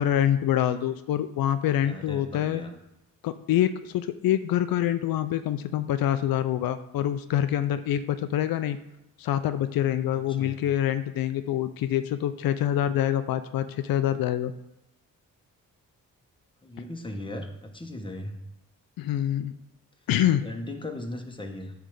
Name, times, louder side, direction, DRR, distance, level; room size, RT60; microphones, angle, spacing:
voice 1, 0.0-2.6 3.2-8.8 9.2-14.5 19.0-19.5 20.1-20.5, left 11 dB, 85° left, 11 dB, 0.5 m, -26 dB
voice 2, 1.8-2.7 10.1-10.6 16.6-18.4 20.4-21.7, left 1 dB, 15° left, 4 dB, 1.2 m, -37 dB
9.0 x 3.4 x 6.5 m, 0.88 s
cardioid pair, 80°, 34 cm